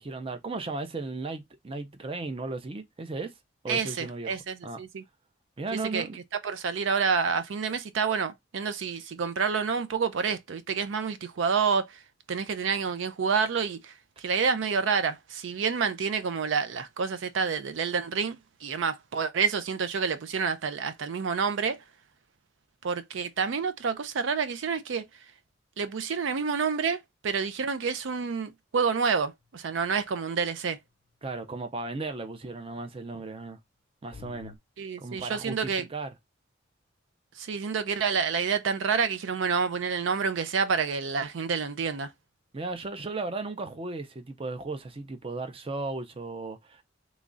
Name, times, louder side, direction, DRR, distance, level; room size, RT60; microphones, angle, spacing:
voice 1, 0.0-3.3 3.6-4.4 4.6-4.8 5.6-6.2 31.2-33.6 34.0-34.5 35.0-36.1 42.5-46.8, right 3 dB, 30° right, 0.5 m, -35 dB
voice 2, 3.7-5.0 5.7-6.1 6.4-12.0 12.3-21.8 22.8-25.0 25.8-30.8 34.8-35.8 37.4-42.1, right 5 dB, 75° right, 0.4 m, -28 dB
sound 1, 29.4-29.7 34.1-34.6, left 6 dB, 45° left, 0.5 m, -46 dB
3.1 x 2.4 x 3.7 m
head